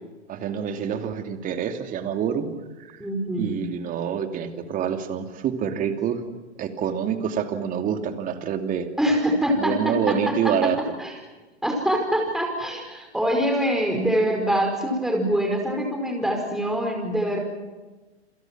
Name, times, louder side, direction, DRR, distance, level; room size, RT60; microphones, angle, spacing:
voice 1, 0.3-2.5 2.8-3.0 3.4-6.2 6.6-8.9 9.5-10.8, right 8 dB, 25° right, 7 dB, 2.7 m, -27 dB
voice 2, 3.0-3.5 9.0-10.7 11.0-11.1 11.6-17.4, equal, ahead, 2 dB, 5.0 m, -24 dB
28.5 x 27.5 x 6.1 m, 1.2 s
figure-of-eight pair, 115°, 34 cm